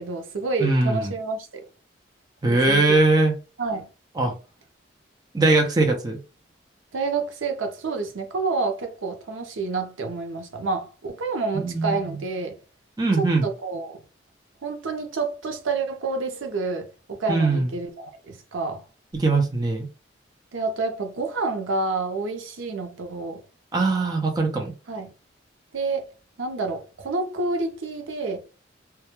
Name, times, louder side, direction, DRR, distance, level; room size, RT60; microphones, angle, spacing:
voice 1, 0.0-1.7 2.4-2.9 3.6-3.9 6.9-12.6 13.2-14.0 14.6-18.8 20.5-23.4 24.9-25.1 25.7-26.0 26.4-28.4, right 3 dB, 90° right, 0.6 m, -29 dB
voice 2, 0.6-1.1 2.4-3.3 4.2-4.3 5.3-6.2 11.5-12.0 13.0-13.5 17.3-17.7 19.1-19.9 23.7-24.7, right 3 dB, 20° right, 0.4 m, -21 dB
2.2 x 2.1 x 2.9 m
head